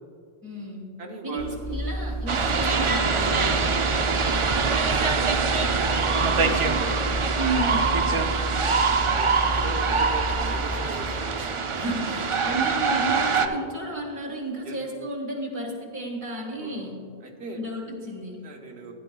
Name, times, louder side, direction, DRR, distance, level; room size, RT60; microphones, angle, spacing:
voice 1, 0.4-0.9 1.2-3.6 7.3-7.9 11.7-17.0 17.6-18.4, right 1 dB, 15° right, -2 dB, 1.5 m, -32 dB
voice 2, 1.0-1.9 4.1-7.2 9.0-9.3 9.5-11.6 14.6-14.8 16.6-17.0 17.2-17.6 18.4-18.9, right 3 dB, 80° right, 0 dB, 1.3 m, -39 dB
sound 1, 1.4-10.7, equal, 80° left, 2.1 m, -31 dB
sound 2, 2.3-13.5, right 5 dB, 45° right, 0.4 m, -24 dB
14.5 x 10.5 x 2.3 m, 2.3 s
omnidirectional pair, 1.1 m